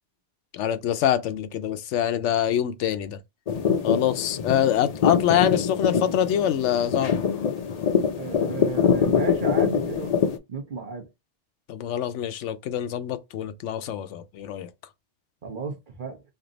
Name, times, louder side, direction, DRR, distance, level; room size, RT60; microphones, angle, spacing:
voice 1, 0.5-3.2 3.8-7.1 11.7-14.7, left 10 dB, 85° left, 0.9 m, -25 dB
sound 1, 3.5-10.4, left 7 dB, 50° left, 0.5 m, -24 dB
voice 2, 8.2-10.2 10.5-11.1 15.4-16.2, right 4 dB, 50° right, 0.9 m, -33 dB
3.3 x 2.6 x 3.9 m
omnidirectional pair, 1.2 m